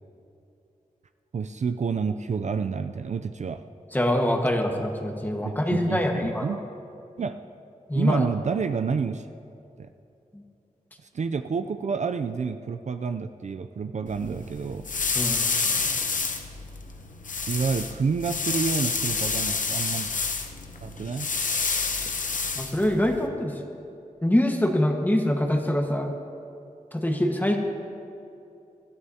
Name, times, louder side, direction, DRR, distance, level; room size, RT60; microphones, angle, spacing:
voice 1, 1.3-3.6 5.4-6.6 7.2-7.3 7.9-9.3 9.8-9.9 11.1-14.9 17.5-20.1 20.8-21.3, right 5 dB, 55° right, 9 dB, 0.4 m, -29 dB
voice 2, 3.9-6.6 7.9-8.2 10.3-10.4 15.1-15.8 22.5-23.6 24.2-26.1 26.9-27.6, left 1 dB, 10° left, 2 dB, 1.4 m, -24 dB
sound 1, 14.1-23.3, left 4 dB, 65° left, 1.0 m, -29 dB
20.0 x 13.0 x 2.8 m, 2.7 s
wide cardioid pair, 80°, 14 cm